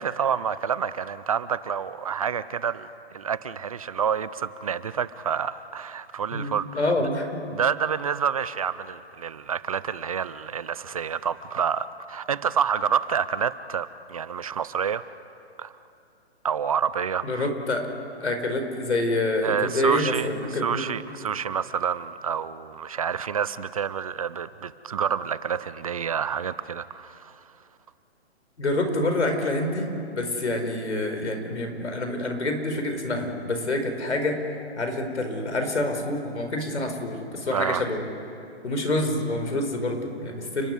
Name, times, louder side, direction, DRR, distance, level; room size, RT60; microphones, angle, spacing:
voice 1, 0.0-7.1 7.5-15.0 15.6-15.7 16.4-17.5 19.4-27.4 37.5-37.9, right 7 dB, 35° right, 16 dB, 0.5 m, -28 dB
voice 2, 6.3-7.3 17.2-17.9 18.2-20.9 28.6-29.9 30.1-34.4 34.8-38.1 38.6-40.7, left 1 dB, 90° left, 5 dB, 4.7 m, -27 dB
29.5 x 12.0 x 9.8 m, 2.7 s
hypercardioid pair, 155°, 33 cm